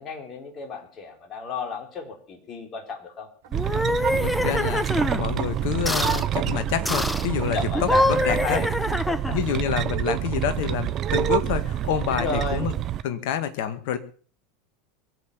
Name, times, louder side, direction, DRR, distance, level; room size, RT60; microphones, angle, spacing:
voice 1, 0.0-3.3 7.5-9.4 11.5-11.6 12.1-12.6, left 4 dB, 35° left, 5 dB, 4.2 m, -33 dB
sound 1, 3.4-8.7, right 8 dB, 60° right, 3.9 m, -48 dB
sound 2, 3.5-5.2 5.9-6.3 6.9-7.3 7.7-9.5, left 1 dB, 5° left, 1.0 m, -25 dB
sound 3, 3.5-13.0, right 10 dB, 40° right, 1.0 m, -27 dB
voice 2, 4.2-4.8 5.1-8.6 9.3-12.7 13.0-14.0, left 9 dB, 55° left, 10 dB, 1.9 m, -28 dB
22.5 x 8.3 x 7.0 m, 0.42 s
figure-of-eight pair, 80°, 0 cm